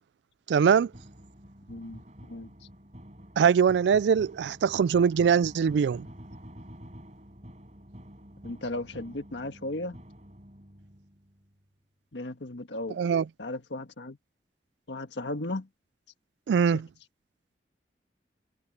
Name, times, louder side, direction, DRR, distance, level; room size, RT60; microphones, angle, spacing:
voice 1, 0.5-0.9 3.4-6.1 13.0-13.2 16.5-16.9, right 7 dB, 80° right, 0.3 m, -22 dB
sound 1, 0.6-11.6, equal, 40° right, 6.5 m, -49 dB
voice 2, 1.7-2.5 8.4-10.0 12.1-13.0 13.4-14.2 14.9-15.7 16.7-16.8, left 2 dB, 90° left, 1.6 m, -36 dB
head